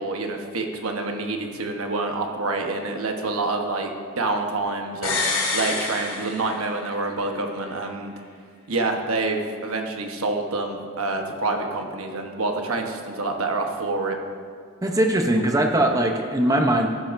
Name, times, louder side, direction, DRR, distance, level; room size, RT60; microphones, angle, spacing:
voice 1, 0.0-3.9 4.2-5.2 5.5-8.1 8.7-14.2, right 3 dB, 75° right, 3 dB, 1.1 m, -27 dB
sound 1, 5.0-7.0 7.3-7.4, left 3 dB, 65° left, 2.7 m, -27 dB
voice 2, 14.8-16.9, right 1 dB, 15° right, 3 dB, 0.7 m, -20 dB
13.5 x 11.0 x 2.6 m, 2.1 s
head